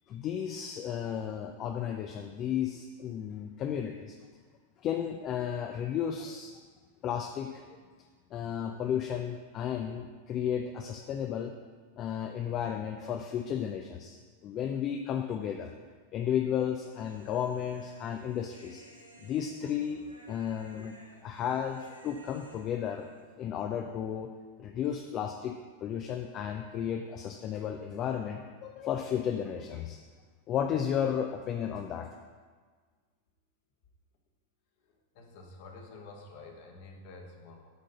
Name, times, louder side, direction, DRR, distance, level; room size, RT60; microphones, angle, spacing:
voice 1, 0.1-4.2 4.8-6.6 7.0-7.8 8.3-11.5 12.0-15.7 16.1-18.8 19.2-20.0 20.3-20.9 21.2-23.1 23.4-24.3 24.6-25.6 25.8-30.0 30.5-32.1, left 9 dB, 35° left, 4 dB, 0.5 m, -33 dB
Human voice, 16.9-23.3, right 1 dB, 90° right, 0.8 m, -56 dB
voice 2, 35.1-37.7, left 3 dB, 50° left, 2 dB, 1.2 m, -49 dB
9.1 x 3.8 x 5.4 m, 1.5 s
figure-of-eight pair, 90°, 0 cm